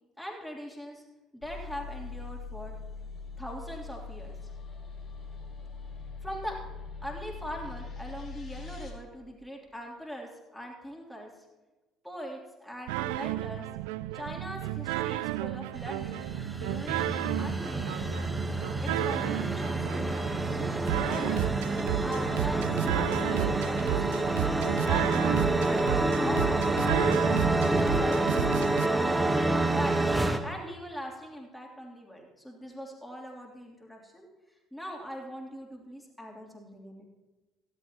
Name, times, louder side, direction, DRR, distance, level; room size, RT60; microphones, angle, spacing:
voice 1, 0.2-1.0 1.3-2.8 3.4-4.3 6.2-6.6 7.0-11.3 12.0-13.7 14.1-16.2 16.6-18.3 18.8-20.2 20.5-21.7 22.0-26.8 27.4-28.4 28.7-29.2 29.7-30.1 30.4-34.3 34.7-37.0, equal, 5° left, -1 dB, 3.2 m, -41 dB
sound 1, 1.4-8.9, left 4 dB, 45° left, 2.9 m, -42 dB
sound 2, 12.9-28.9, right 15 dB, 70° right, 0.3 m, -32 dB
sound 3, 15.8-30.4, right 2 dB, 15° right, 1.2 m, -28 dB
15.5 x 14.0 x 3.0 m, 1.1 s
hypercardioid pair, 55°, 0 cm